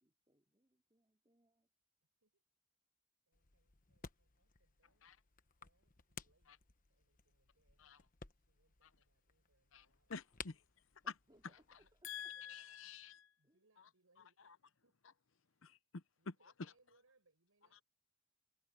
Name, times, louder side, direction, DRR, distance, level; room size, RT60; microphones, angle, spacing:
voice 1, 0.0-1.7 11.0-11.4 11.7-12.1 13.4-13.6, right 1 dB, 20° right, 2.4 m, -74 dB
sound 1, 3.3-12.0, left 6 dB, 40° left, 1.1 m, -58 dB
voice 2, 3.3-5.1 5.4-6.5 6.9-8.0 8.3-10.1 11.3-11.4 11.8-11.9 12.2-12.9 13.4-15.0 15.5-15.7 16.2-17.8, right 3 dB, 80° right, 4.8 m, -78 dB
voice 3, 9.7-10.6 11.1-11.2 11.4-11.8 12.0-13.3 14.4-14.6 15.6-16.0, left 6 dB, 65° left, 0.8 m, -49 dB
head